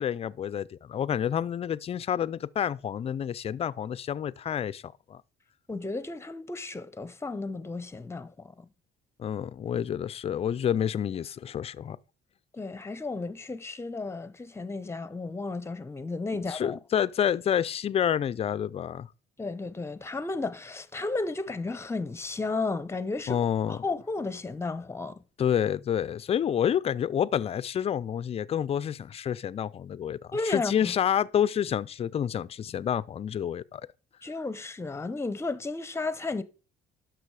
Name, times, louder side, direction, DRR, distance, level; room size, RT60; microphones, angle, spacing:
voice 1, 0.0-5.2 9.2-12.0 16.5-19.1 23.3-23.8 25.4-33.8, left 9 dB, 35° left, 0.5 m, -28 dB
voice 2, 5.7-8.7 12.5-16.8 19.4-23.4 23.7-25.2 30.3-30.9 34.2-36.4, left 3 dB, 15° left, 0.8 m, -33 dB
12.0 x 6.1 x 4.8 m
cardioid pair, 110°, 17 cm